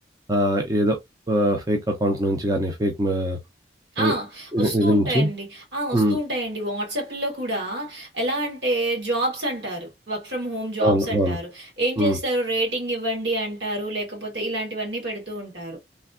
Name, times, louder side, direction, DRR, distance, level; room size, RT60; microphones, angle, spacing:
voice 1, 0.3-1.0 1.3-3.4 4.0-4.1 4.5-5.3 5.9-6.2 10.8-11.4 12.0-12.2, equal, 20° right, 0.4 m, -21 dB
voice 2, 4.0-15.8, right 1 dB, 70° right, 1.7 m, -28 dB
3.3 x 2.6 x 2.4 m
head